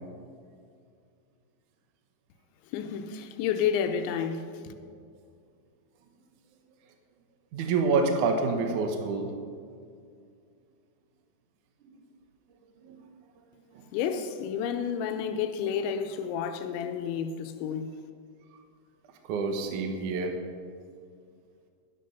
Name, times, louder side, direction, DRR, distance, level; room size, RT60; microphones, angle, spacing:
voice 1, 2.7-4.7 13.9-17.9, left 7 dB, 85° left, 3.0 m, -30 dB
voice 2, 7.5-9.3 11.8-11.9 12.8-13.0 13.7-13.8 19.2-20.4, right 4 dB, 90° right, 1.7 m, -27 dB
12.0 x 11.5 x 5.5 m
omnidirectional pair, 5.3 m